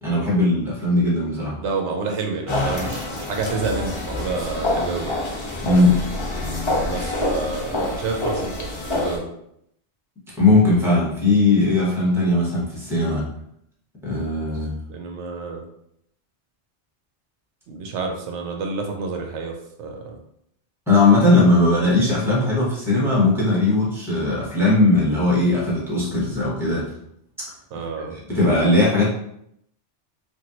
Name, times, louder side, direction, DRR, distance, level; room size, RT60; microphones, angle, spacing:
voice 1, 0.0-1.6 5.6-6.0 10.4-13.3 14.0-14.8 20.9-26.9 28.1-29.1, left 2 dB, ahead, -5 dB, 0.8 m, -19 dB
voice 2, 1.6-5.2 6.8-9.3 14.9-15.6 17.7-20.2 27.7-28.1, right 4 dB, 85° right, 2 dB, 0.9 m, -29 dB
sound 1, 2.5-9.2, left 2 dB, 35° left, 0.5 m, -26 dB
3.0 x 2.5 x 2.8 m, 0.73 s
omnidirectional pair, 1.2 m